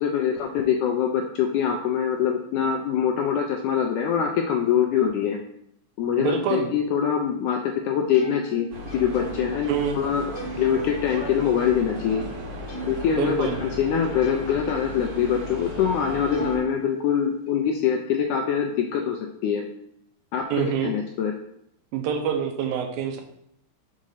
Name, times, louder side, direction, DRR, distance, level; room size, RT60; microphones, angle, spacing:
voice 1, 0.0-5.4 6.0-8.7 8.9-10.3 10.6-12.2 12.9-19.7 20.3-21.3, left 8 dB, 85° left, 3 dB, 1.8 m, -24 dB
voice 2, 6.2-6.7 9.7-10.0 13.2-13.6 20.5-20.9 21.9-23.2, right 7 dB, 85° right, 5 dB, 2.6 m, -26 dB
Plucked string instrument, 8.1-13.1 13.4-15.1 15.5-15.6 16.3-17.5, right 2 dB, 50° left, 0.9 m, -39 dB
sound 1, 8.7-16.6, equal, 65° right, 2.9 m, -36 dB
6.3 x 3.7 x 5.6 m, 0.73 s
omnidirectional pair, 4.1 m